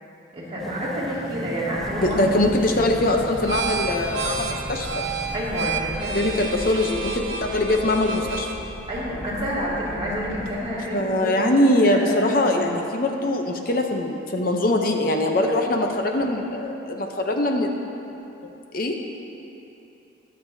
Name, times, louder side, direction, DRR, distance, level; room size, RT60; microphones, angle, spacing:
voice 1, 0.3-2.2 5.3-6.3 8.9-11.4 11.9-12.7, equal, 30° right, -8 dB, 2.4 m, -29 dB
sound 1, 0.6-5.8, equal, ahead, 0.5 m, -37 dB
sound 2, 1.8-10.6, right 3 dB, 70° right, 1.1 m, -31 dB
voice 2, 2.0-4.9 6.1-8.5 10.9-17.7 18.7-19.0, left 1 dB, 50° left, 3 dB, 0.7 m, -22 dB
21.5 x 7.5 x 2.7 m, 2.9 s
head